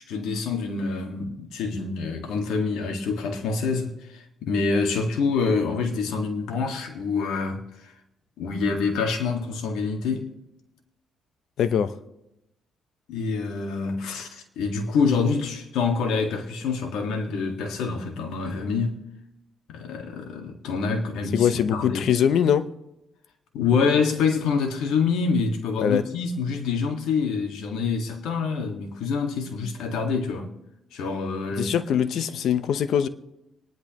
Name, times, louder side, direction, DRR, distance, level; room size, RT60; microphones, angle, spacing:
voice 1, 0.0-7.9 8.4-10.3 13.1-19.0 19.7-22.0 23.5-30.5 30.9-31.7, left 5 dB, 85° left, 1.8 m, -26 dB
voice 2, 11.6-11.9 21.3-22.7 25.8-26.0 31.6-33.1, left 8 dB, 70° left, 0.8 m, -22 dB
25.5 x 10.5 x 3.0 m
cardioid pair, 90°, 0 cm